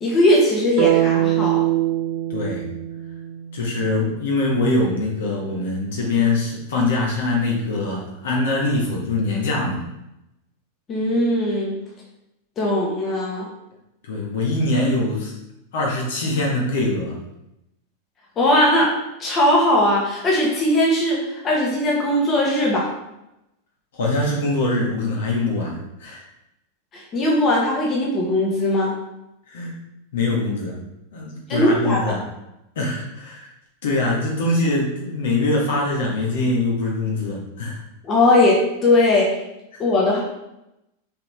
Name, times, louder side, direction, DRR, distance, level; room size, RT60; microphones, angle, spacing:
voice 1, 0.0-1.6 10.9-11.7 12.6-13.4 18.4-18.9 19.2-22.9 26.9-28.9 31.5-32.2 38.0-39.3 39.8-40.2, left 1 dB, 25° left, -3 dB, 1.6 m, -19 dB
sound 1, 0.8-4.8, right 14 dB, 45° right, 0.6 m, -23 dB
voice 2, 2.3-2.6 3.5-9.8 14.0-15.3 15.7-17.2 23.9-26.2 29.5-29.7 30.1-30.8 31.1-32.2 32.7-33.5 33.8-37.8 39.7-39.8, left 2 dB, 60° left, -2 dB, 1.7 m, -23 dB
6.6 x 4.2 x 3.4 m, 0.88 s
figure-of-eight pair, 90°, 0 cm